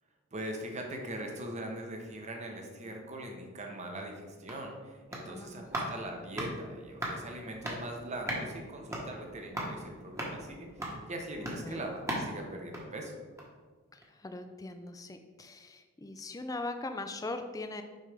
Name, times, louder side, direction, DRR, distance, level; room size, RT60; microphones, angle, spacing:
voice 1, 0.3-13.2, right 1 dB, 35° right, 2 dB, 0.9 m, -41 dB
sound 1, 4.4-13.7 14.0-14.1, right 1 dB, 15° right, 1.2 m, -40 dB
voice 2, 5.3-5.7 9.0-9.3 11.6-11.8 13.9-17.8, left 2 dB, 15° left, 7 dB, 0.4 m, -41 dB
6.4 x 5.3 x 3.4 m, 1.4 s
head